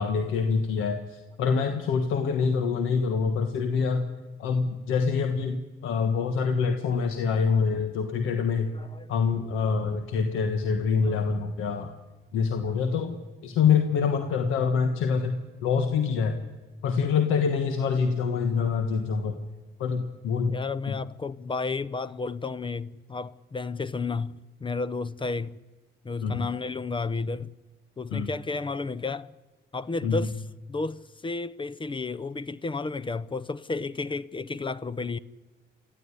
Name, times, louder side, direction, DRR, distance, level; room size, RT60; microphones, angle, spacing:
voice 1, 0.0-4.1 4.4-8.7 9.1-11.9 12.3-13.2 13.4-16.4 16.8-19.4 19.8-20.6 20.9-21.0 26.2-26.5 28.1-28.3 30.0-30.2, left 5 dB, 90° left, 1.5 m, -25 dB
voice 2, 8.7-9.1 11.0-11.2 12.6-12.7 20.5-25.6 26.0-27.5 28.0-29.3 29.7-30.4 30.7-35.2, left 3 dB, 25° left, 0.7 m, -32 dB
25.0 x 14.5 x 9.8 m
cardioid pair, 90°, 20 cm